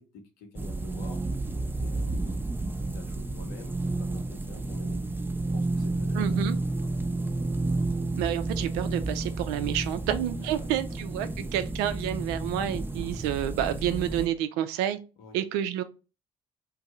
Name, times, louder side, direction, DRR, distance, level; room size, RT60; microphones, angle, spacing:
voice 1, 0.0-2.6 2.9-5.0 5.5-6.9 10.4-10.8 15.2-15.4, left 4 dB, 65° left, 0.8 m, -48 dB
sound 1, 0.6-14.3, right 2 dB, 10° right, 0.5 m, -31 dB
voice 2, 6.1-6.6 8.2-15.0 15.3-15.8, right 11 dB, 65° right, 0.4 m, -29 dB
2.6 x 2.2 x 4.1 m
figure-of-eight pair, 45°, 18 cm